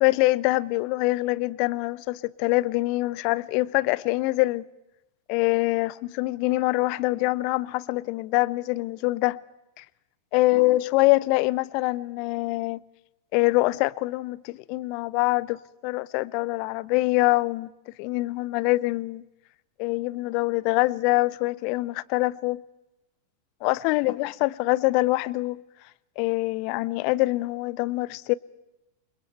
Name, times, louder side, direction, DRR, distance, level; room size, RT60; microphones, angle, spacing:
voice 1, 0.0-4.6 5.3-9.4 9.8-9.9 10.3-12.8 13.3-17.7 18.0-19.2 19.8-22.6 23.6-25.6 26.2-28.3, left 21 dB, 45° left, 0.6 m, -24 dB
28.5 x 21.5 x 4.5 m
figure-of-eight pair, 90°, 0 cm